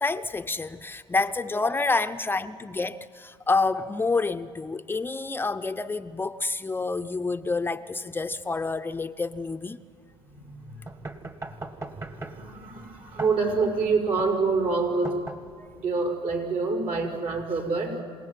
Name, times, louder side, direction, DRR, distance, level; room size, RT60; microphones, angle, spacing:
voice 1, 0.0-9.8 15.6-15.7, left 3 dB, 20° left, 0.7 m, -28 dB
voice 2, 10.3-10.8 12.1-15.1 15.7-18.0, right 4 dB, 60° right, 5.9 m, -27 dB
sound 1, 10.9-15.9, right 2 dB, 30° right, 1.8 m, -40 dB
27.5 x 18.0 x 9.3 m
supercardioid pair, 85°, 11 cm